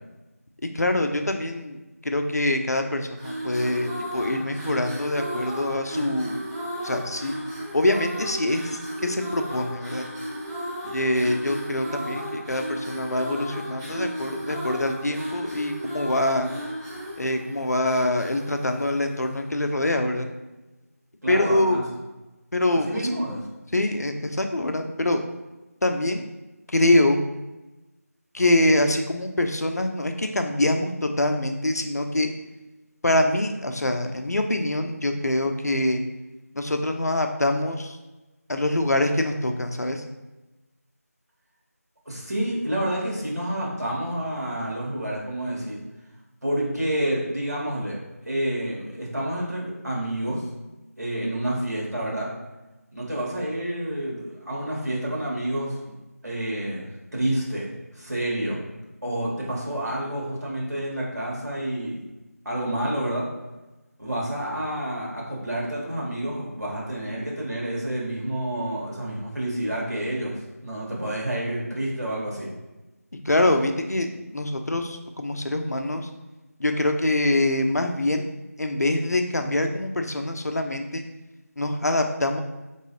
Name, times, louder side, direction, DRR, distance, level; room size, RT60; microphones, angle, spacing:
voice 1, 0.6-1.8 2.0-6.4 6.8-7.3 7.7-10.0 10.8-16.5 17.2-20.2 21.3-21.8 22.5-23.0 23.7-25.2 25.8-26.2 26.7-27.2 28.3-32.3 33.0-36.0 36.6-38.0 38.5-40.0 73.3-76.1 76.6-78.3 78.6-81.0 81.6-82.4, left 1 dB, 75° left, 5 dB, 0.5 m, -24 dB
sound 1, 3.1-19.5, equal, 20° right, 1.0 m, -35 dB
voice 2, 21.2-21.8 22.7-23.5 42.0-45.8 46.4-48.0 48.2-50.4 51.0-52.3 52.9-55.8 56.2-58.6 59.0-62.1 62.4-63.3 64.0-72.5, right 1 dB, 80° right, -4 dB, 1.4 m, -29 dB
3.7 x 3.0 x 2.9 m, 1.1 s
figure-of-eight pair, 170°, 9 cm